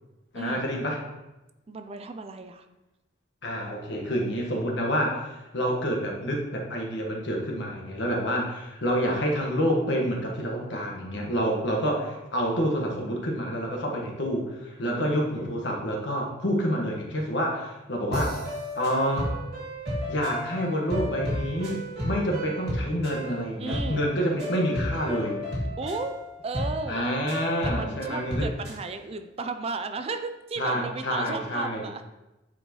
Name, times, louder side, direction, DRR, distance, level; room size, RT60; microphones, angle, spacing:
voice 1, 0.3-1.0 3.4-5.2 5.5-18.4 18.7-19.4 20.1-25.4 26.9-28.5 30.6-31.9, equal, 65° left, 0 dB, 1.4 m, -28 dB
voice 2, 1.7-2.6 14.0-14.2 14.8-15.1 23.6-24.1 25.8-27.0 27.6-32.0, right 3 dB, 30° right, 8 dB, 0.4 m, -35 dB
sound 1, 18.1-28.8, equal, 60° right, 2.5 m, -33 dB
9.4 x 4.6 x 3.0 m, 1.0 s
head